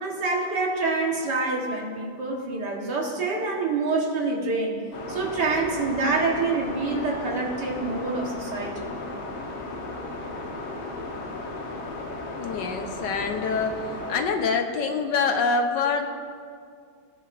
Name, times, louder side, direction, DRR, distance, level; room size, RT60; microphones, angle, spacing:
voice 1, 0.0-4.8 5.1-8.9, right 3 dB, 60° right, -1 dB, 2.0 m, -26 dB
sound 1, 4.9-14.3, left 2 dB, 90° left, 2.1 m, -35 dB
voice 2, 12.4-16.1, left 4 dB, 70° left, 5 dB, 1.5 m, -26 dB
18.5 x 9.9 x 2.6 m, 2.2 s
omnidirectional pair, 2.2 m